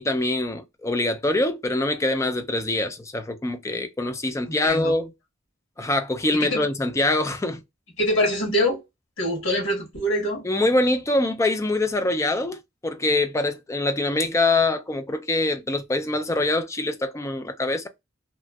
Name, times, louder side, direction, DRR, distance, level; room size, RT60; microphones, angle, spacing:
voice 1, 0.0-5.1 5.8-7.6 10.4-17.9, left 2 dB, 15° left, 0.4 m, -24 dB
voice 2, 4.5-4.9 6.3-6.6 8.0-8.8 9.2-10.4, equal, 80° left, 1.5 m, -24 dB
2.9 x 2.6 x 2.3 m
head